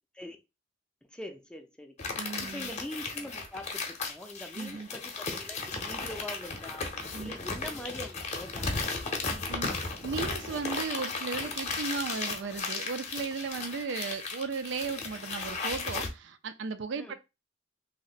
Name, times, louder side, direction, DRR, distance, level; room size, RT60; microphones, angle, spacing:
voice 1, 1.1-1.9 2.4-6.8 7.2-9.0 16.9-17.2, left 1 dB, 5° left, 0.4 m, -43 dB
sound 1, 2.0-16.1, left 3 dB, 40° left, 0.7 m, -35 dB
voice 2, 2.2-2.7 4.5-4.9 7.1-7.3 9.5-9.7 10.0-17.2, right 5 dB, 70° right, 0.4 m, -36 dB
2.8 x 2.1 x 4.0 m
head